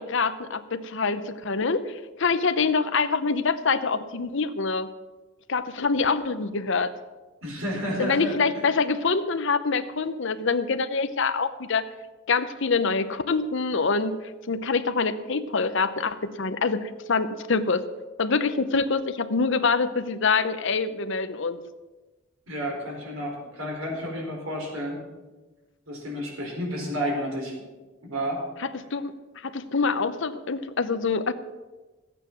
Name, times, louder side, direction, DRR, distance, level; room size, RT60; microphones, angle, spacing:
voice 1, 0.0-4.9 5.5-6.9 8.0-11.8 12.3-14.2 14.5-17.8 18.2-21.6 28.7-31.3, left 4 dB, 65° left, 11 dB, 0.8 m, -25 dB
voice 2, 7.4-8.6 22.5-25.0 25.9-27.5 28.0-28.4, equal, 90° right, 0 dB, 4.6 m, -31 dB
14.5 x 8.9 x 6.0 m, 1.2 s
head